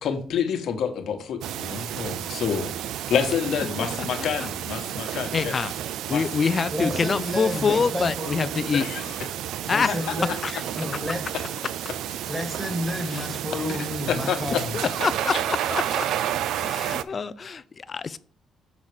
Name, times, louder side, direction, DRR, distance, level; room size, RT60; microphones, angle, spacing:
voice 1, 0.0-2.7 3.1-5.5 6.1-6.2 8.7-9.2 9.9-10.0 13.7-14.6 15.0-15.4 15.9-16.1 16.5-16.8, left 7 dB, 70° left, 1.2 m, -28 dB
sound 1, 1.4-17.0, right 11 dB, 80° right, 0.4 m, -31 dB
voice 2, 5.0-5.7 6.1-8.9 9.7-9.9 10.4-10.6 13.1-13.2 14.7-16.1 16.7-18.2, left 5 dB, 40° left, 0.4 m, -26 dB
voice 3, 6.7-8.8 9.7-10.3 10.8-11.3 12.3-14.8, left 1 dB, 10° right, 1.8 m, -31 dB
7.1 x 4.0 x 4.8 m
cardioid pair, 90°, 0 cm